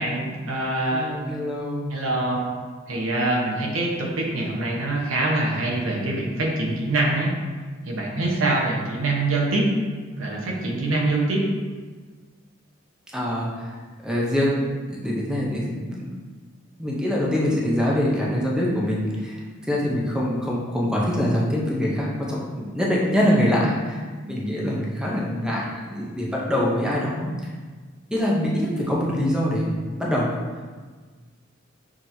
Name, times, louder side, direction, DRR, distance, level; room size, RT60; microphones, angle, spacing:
voice 1, 0.0-1.1 1.9-2.5 2.9-7.3 7.9-9.6 10.2-11.4, right 2 dB, 90° right, -2 dB, 0.9 m, -24 dB
voice 2, 0.9-1.9 13.1-13.8 14.0-14.6 14.9-16.1 16.8-19.4 19.6-27.3 28.1-29.7 30.0-30.3, equal, 5° right, -4 dB, 0.6 m, -24 dB
6.2 x 3.0 x 2.7 m, 1.5 s
head